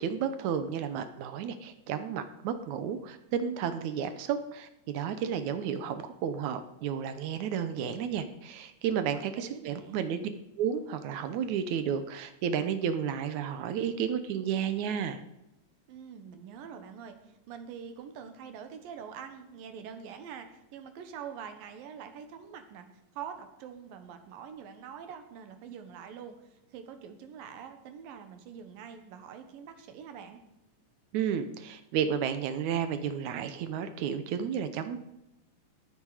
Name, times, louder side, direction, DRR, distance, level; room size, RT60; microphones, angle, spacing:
voice 1, 0.0-10.3 10.6-15.2 31.1-35.0, right 8 dB, 70° right, 10 dB, 2.0 m, -32 dB
voice 2, 9.1-10.1 15.9-22.9 23.1-30.4, right 7 dB, 85° right, 7 dB, 3.0 m, -45 dB
19.5 x 9.2 x 4.9 m, 0.91 s
omnidirectional pair, 3.9 m